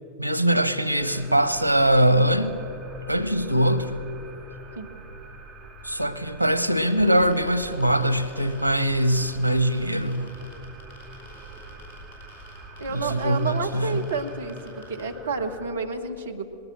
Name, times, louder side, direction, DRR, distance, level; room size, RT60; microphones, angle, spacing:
voice 1, 0.2-2.6 3.1-4.1 5.8-10.4 12.9-14.0, right 1 dB, 90° left, 14 dB, 0.9 m, -22 dB
sound 1, 1.0-15.6, right 2 dB, 10° right, 4.3 m, -45 dB
sound 2, 7.1-15.0, left 4 dB, 45° left, 6.7 m, -51 dB
voice 2, 12.8-16.5, right 4 dB, 70° right, 5 dB, 1.4 m, -30 dB
20.0 x 18.5 x 7.5 m, 2.9 s
figure-of-eight pair, 90°, 0 cm